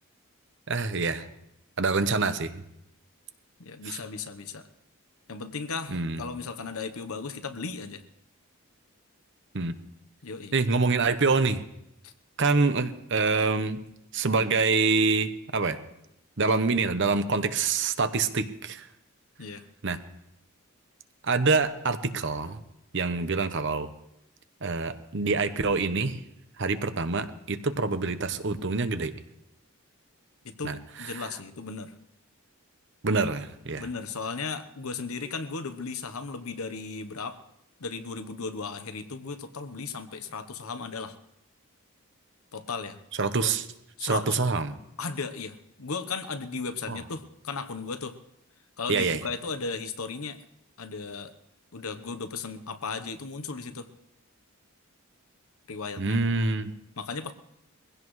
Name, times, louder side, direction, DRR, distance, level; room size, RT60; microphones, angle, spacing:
voice 1, 0.7-1.3 1.8-2.6 3.8-4.0 5.9-6.2 9.5-9.7 10.5-11.6 12.4-13.8 14.1-15.8 16.4-18.9 19.8-20.0 21.2-22.6 22.9-23.9 24.6-26.2 26.6-29.1 30.6-30.8 31.2-31.3 33.0-33.9 43.2-43.6 44.0-44.7 46.9-47.0 48.9-49.2 56.0-56.7, right 4 dB, 55° right, 10 dB, 0.9 m, -26 dB
voice 2, 3.6-4.6 5.3-8.0 10.2-10.5 12.0-12.1 19.4-19.6 30.4-31.9 33.8-37.4 37.8-41.1 42.5-43.0 43.4-43.5 44.0-44.4 45.0-48.2 48.8-50.4 50.8-51.3 51.7-53.9 55.7-56.2 57.0-57.3, left 4 dB, 75° left, 9 dB, 1.0 m, -36 dB
22.5 x 16.0 x 3.2 m, 0.82 s
head